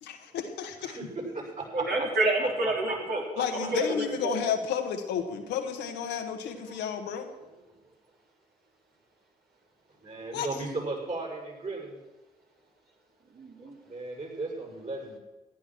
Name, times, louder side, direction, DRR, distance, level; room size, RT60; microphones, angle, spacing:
voice 1, 0.0-1.0 3.4-7.3 10.3-10.6, left 8 dB, 80° left, 5 dB, 1.6 m, -32 dB
voice 2, 1.7-3.2 3.7-4.4 13.3-13.8, right 2 dB, 65° right, -1 dB, 3.9 m, -28 dB
voice 3, 2.9-3.4 6.7-6.8 10.0-11.9 13.8-15.2, right 3 dB, 45° right, 0 dB, 6.3 m, -36 dB
14.5 x 10.5 x 6.2 m, 1.1 s
hypercardioid pair, 45°, 18 cm